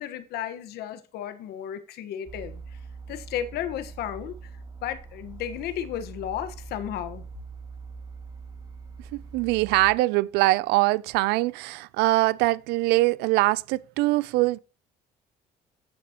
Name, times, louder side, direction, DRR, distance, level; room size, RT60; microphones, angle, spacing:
voice 1, 0.0-2.6 3.1-4.4 4.8-7.2, left 10 dB, 75° left, 1.4 m, -33 dB
sound 1, 2.3-9.9, right 5 dB, 20° right, 2.1 m, -43 dB
voice 2, 9.1-14.6, right 20 dB, 90° right, 0.5 m, -23 dB
14.5 x 6.2 x 3.0 m
cardioid pair, 95°, 17 cm